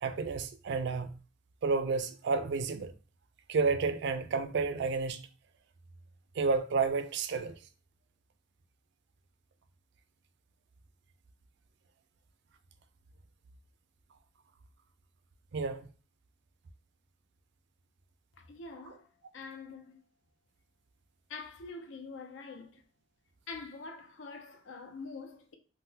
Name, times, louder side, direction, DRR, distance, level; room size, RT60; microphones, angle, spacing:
voice 1, 0.0-1.1 1.6-2.9 3.5-5.2 6.4-7.5 15.5-15.9, right 4 dB, 65° right, 0.4 m, -30 dB
voice 2, 18.4-19.1 19.3-20.0 21.3-22.8 23.5-25.6, left 4 dB, 90° left, 0.6 m, -45 dB
3.7 x 2.1 x 2.8 m
head